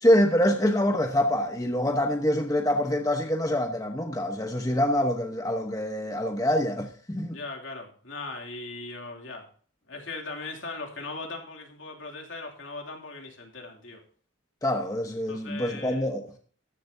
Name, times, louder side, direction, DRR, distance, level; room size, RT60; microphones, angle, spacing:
voice 1, 0.0-7.4 14.6-16.4, left 1 dB, 15° left, 0.9 m, -25 dB
voice 2, 7.3-9.5 9.9-14.0 15.3-16.1, left 3 dB, 70° left, 2.8 m, -39 dB
14.5 x 11.5 x 2.7 m
head